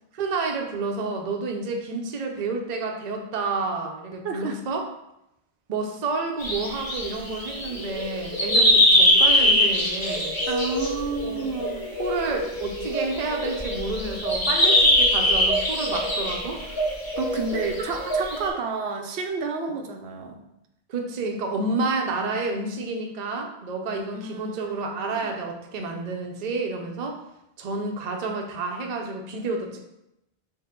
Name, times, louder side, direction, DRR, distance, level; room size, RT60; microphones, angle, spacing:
voice 1, 0.1-4.9 5.7-10.4 11.2-11.5 12.0-16.7 17.8-17.9 19.7-19.8 20.9-27.2 27.6-29.8, right 3 dB, 50° right, 2 dB, 0.6 m, -30 dB
voice 2, 4.2-4.6 10.5-11.9 17.2-20.4 24.1-25.3, right 4 dB, 85° right, 4 dB, 0.8 m, -31 dB
sound 1, 6.4-18.5, left 1 dB, 20° left, 0.9 m, -23 dB
5.4 x 2.1 x 3.6 m, 0.84 s
omnidirectional pair, 1.1 m